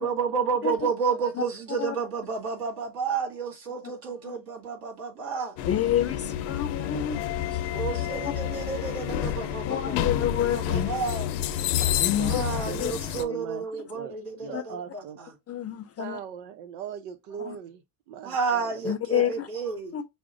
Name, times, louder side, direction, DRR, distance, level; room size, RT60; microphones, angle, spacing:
voice 1, 0.0-5.5 7.7-10.0 10.3-11.3 12.2-15.3 18.2-19.9, right 5 dB, 55° right, 2.3 m, -31 dB
sound 1, 5.6-13.2, left 11 dB, 80° left, 0.7 m, -29 dB
voice 2, 5.7-7.2 7.5-7.6 8.2-8.3 9.6-10.9 12.0-12.4 12.8-12.9 14.5-14.6 15.5-16.2 17.4-17.6 18.8-19.5 19.9-20.1, left 10 dB, 35° left, 0.5 m, -28 dB
voice 3, 12.2-13.6 13.9-15.2 16.0-17.8 18.1-19.4, right 8 dB, 85° right, 0.7 m, -40 dB
5.8 x 2.1 x 2.5 m
supercardioid pair, 90°, 44 cm